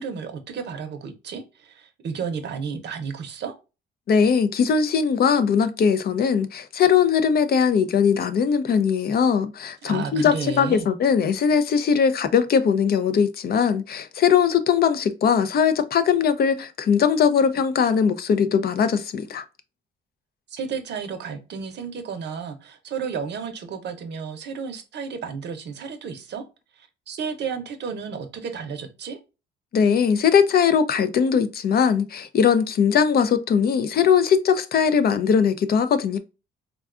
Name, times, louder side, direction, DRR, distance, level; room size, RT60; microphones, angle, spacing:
voice 1, 0.0-3.5 9.8-10.9 20.5-26.4 26.8-29.2, right 6 dB, 60° right, 0.6 m, -32 dB
voice 2, 4.1-19.4 29.7-36.2, left 7 dB, 50° left, 0.4 m, -20 dB
3.5 x 2.2 x 2.4 m
cardioid pair, 90°, 20 cm